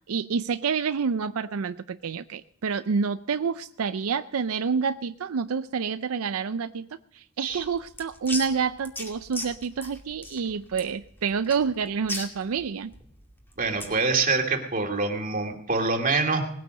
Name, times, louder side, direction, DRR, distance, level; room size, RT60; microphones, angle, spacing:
voice 1, 0.1-6.9 7.1-12.9, right 5 dB, 90° right, 12 dB, 0.5 m, -28 dB
sound 1, 7.5-14.0, left 1 dB, 10° left, 2.4 m, -38 dB
voice 2, 13.6-16.5, right 4 dB, 40° right, 3 dB, 2.4 m, -25 dB
19.5 x 9.2 x 6.4 m, 0.72 s
head